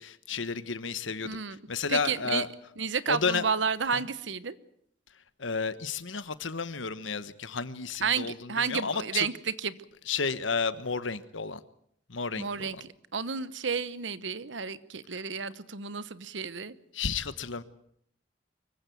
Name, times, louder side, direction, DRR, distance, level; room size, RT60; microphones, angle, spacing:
voice 1, 0.0-1.4 1.7-2.5 3.0-3.5 3.9-4.1 5.4-9.3 10.0-11.6 12.1-12.8 15.1-15.2 16.9-17.6, left 5 dB, 85° left, 14 dB, 1.3 m, -32 dB
voice 2, 1.2-1.6 1.9-2.4 2.8-4.6 8.0-9.3 9.6-9.7 12.4-12.7 13.1-16.7, right 6 dB, 70° right, 16 dB, 1.1 m, -31 dB
24.5 x 15.5 x 9.4 m, 0.70 s
head